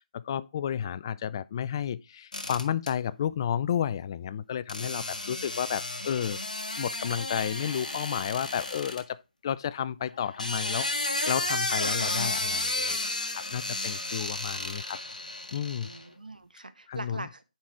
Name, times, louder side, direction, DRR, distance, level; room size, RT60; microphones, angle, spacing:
voice 1, 0.0-6.4 6.8-15.0 15.5-15.9 16.9-17.3, left 9 dB, 35° left, 0.3 m, -32 dB
sound 1, 2.3-2.9 4.7-9.0 10.2-16.0, left 2 dB, 70° left, 1.7 m, -32 dB
voice 2, 7.4-8.0 15.8-17.4, right 2 dB, 85° right, 1.0 m, -43 dB
9.4 x 4.0 x 4.4 m
figure-of-eight pair, 150°, 4 cm